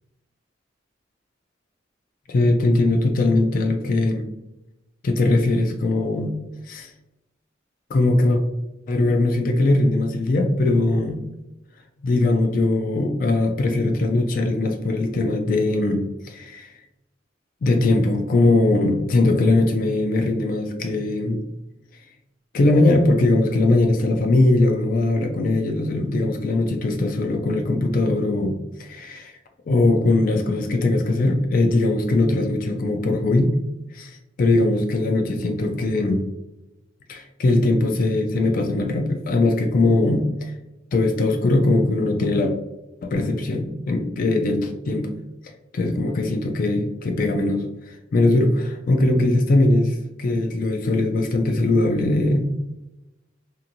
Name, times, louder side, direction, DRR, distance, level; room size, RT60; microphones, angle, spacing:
voice 1, 2.3-4.2 5.0-6.4 6.6-6.9 7.9-8.4 8.9-11.2 12.0-16.8 17.6-21.4 22.5-29.4 29.7-33.5 33.9-36.2 37.1-40.5 40.9-42.5 43.0-45.1 45.4-52.4, left 2 dB, 45° left, 4 dB, 0.3 m, -20 dB
2.8 x 2.6 x 2.5 m, 0.94 s
head